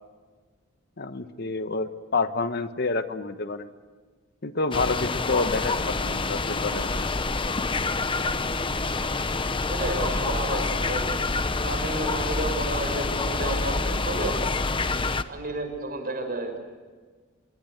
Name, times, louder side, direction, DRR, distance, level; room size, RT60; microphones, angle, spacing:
voice 1, 1.0-3.7 4.4-6.9 8.7-9.0, left 3 dB, 55° left, 10 dB, 1.2 m, -28 dB
sound 1, 4.7-15.2, left 3 dB, 25° left, 0.9 m, -27 dB
voice 2, 9.7-11.1 11.5-14.4 15.3-16.6, right 2 dB, 45° right, 4 dB, 6.3 m, -31 dB
26.0 x 23.0 x 8.1 m, 1.4 s
head